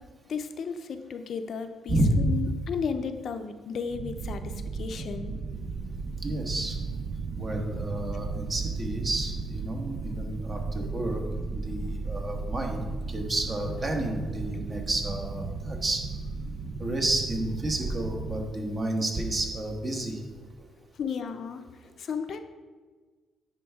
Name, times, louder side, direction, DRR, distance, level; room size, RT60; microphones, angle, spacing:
voice 1, 0.3-5.4 20.9-21.6 22.0-22.4, left 6 dB, 60° left, 8 dB, 0.5 m, -34 dB
voice 2, 1.9-2.3 6.2-6.8 7.4-11.2 11.5-16.0 16.8-20.2 20.6-20.7, right 1 dB, 35° right, 2 dB, 1.2 m, -30 dB
sound 1, 3.9-18.5, right 4 dB, 55° right, 0.6 m, -35 dB
9.3 x 4.5 x 3.5 m, 1.4 s
cardioid pair, 90°, 0 cm